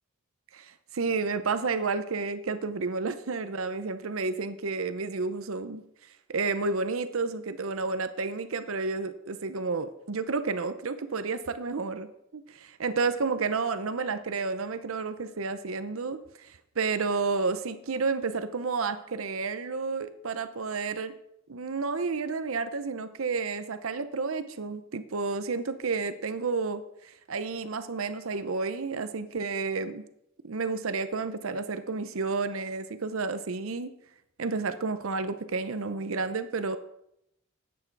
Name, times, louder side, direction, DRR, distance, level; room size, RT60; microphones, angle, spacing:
voice 1, 0.5-5.8 6.3-21.1 21.5-30.0 30.4-33.9 34.4-36.8, right 4 dB, 75° right, 11 dB, 0.7 m, -31 dB
13.0 x 9.1 x 4.7 m, 0.80 s
head